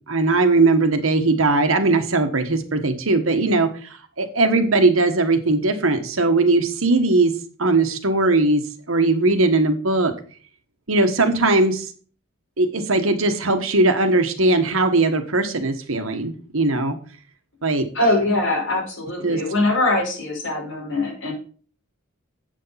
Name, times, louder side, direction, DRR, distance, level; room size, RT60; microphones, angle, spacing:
voice 1, 0.1-3.9 4.2-7.3 7.6-10.1 10.9-11.8 12.6-17.0 17.6-17.9 19.2-19.4, right 2 dB, 75° right, 7 dB, 1.4 m, -19 dB
voice 2, 17.9-21.3, left 2 dB, 60° left, -2 dB, 4.9 m, -22 dB
8.4 x 6.5 x 5.7 m, 0.42 s
head